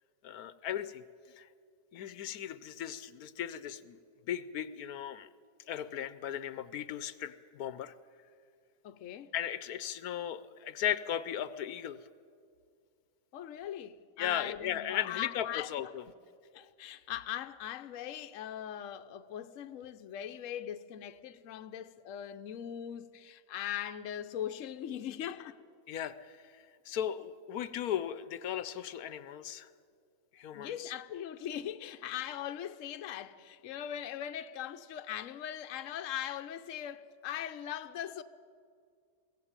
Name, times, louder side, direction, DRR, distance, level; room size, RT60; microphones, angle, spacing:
voice 1, 0.2-1.0 1.4-1.5 1.9-4.0 4.3-5.3 5.7-7.9 9.3-12.0 14.2-16.0 25.9-29.7 30.3-30.9, left 10 dB, 85° left, 1.2 m, -37 dB
voice 2, 8.8-9.3 13.3-15.7 16.5-25.6 30.5-38.2, left 10 dB, 65° left, 1.1 m, -40 dB
22.5 x 16.0 x 8.9 m
omnidirectional pair, 1.5 m